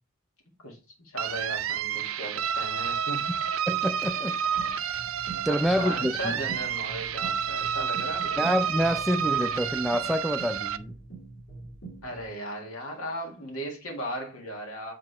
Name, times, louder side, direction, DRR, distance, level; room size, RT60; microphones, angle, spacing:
voice 1, 0.6-3.3 5.5-8.5 12.0-14.9, equal, 90° left, 1.9 m, -37 dB
sound 1, 1.2-10.8, right 8 dB, 75° right, 0.4 m, -30 dB
voice 2, 3.7-4.4 5.4-6.4 8.4-10.9, equal, ahead, 0.3 m, -27 dB
sound 2, 4.6-12.3, right 3 dB, 55° left, 2.6 m, -44 dB
8.0 x 3.7 x 3.1 m
head